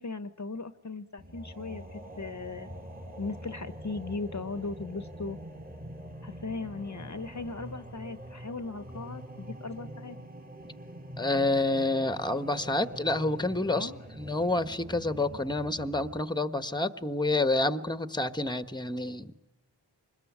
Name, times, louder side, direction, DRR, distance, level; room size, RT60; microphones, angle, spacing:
voice 1, 0.0-2.7 3.2-5.4 6.2-10.2 13.7-14.0, left 3 dB, 40° left, 12 dB, 1.1 m, -38 dB
sound 1, 1.2-16.2, equal, 20° right, 2.7 m, -44 dB
voice 2, 11.2-13.9 14.2-19.3, left 2 dB, 10° left, 11 dB, 1.4 m, -28 dB
26.0 x 21.0 x 9.6 m, 0.97 s
cardioid pair, 50°, 44 cm